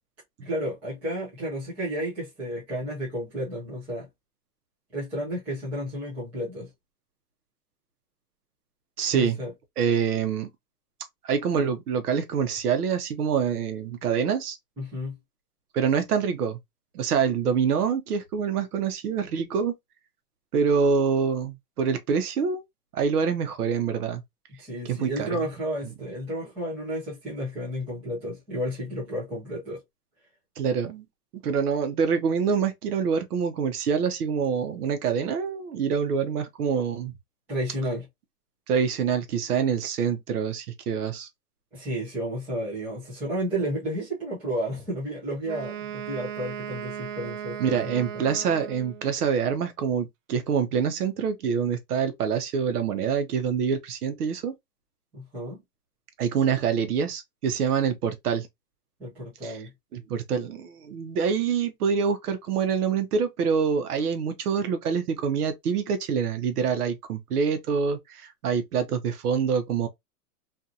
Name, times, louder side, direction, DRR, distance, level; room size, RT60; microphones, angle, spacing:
voice 1, 0.4-4.1 4.9-6.7 9.1-9.5 14.8-15.2 24.6-29.8 37.5-38.1 41.7-47.9 55.1-55.6 59.0-59.7, equal, 5° right, 0.5 m, -32 dB
voice 2, 9.0-9.4 9.8-10.5 11.2-14.6 15.7-16.6 16.9-19.7 20.5-22.6 22.9-24.2 24.8-25.3 30.6-31.1 31.3-37.1 38.7-41.3 47.6-54.5 56.2-58.5 59.4-59.6 59.9-69.9, right 6 dB, 70° right, 0.9 m, -26 dB
Wind instrument woodwind instrument, 45.4-49.2, right 9 dB, 55° right, 0.5 m, -37 dB
2.7 x 2.6 x 2.3 m
hypercardioid pair, 155°, 47 cm